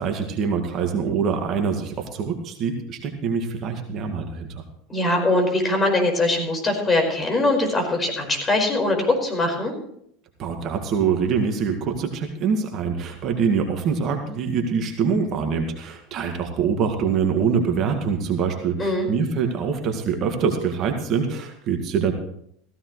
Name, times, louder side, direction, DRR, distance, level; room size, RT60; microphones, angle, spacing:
voice 1, 0.0-4.6 10.4-22.1, right 6 dB, 45° right, 4 dB, 2.1 m, -24 dB
voice 2, 4.9-9.7 18.8-19.1, left 2 dB, 25° left, 3 dB, 5.0 m, -22 dB
16.0 x 15.5 x 3.2 m, 0.70 s
hypercardioid pair, 85°, 0 cm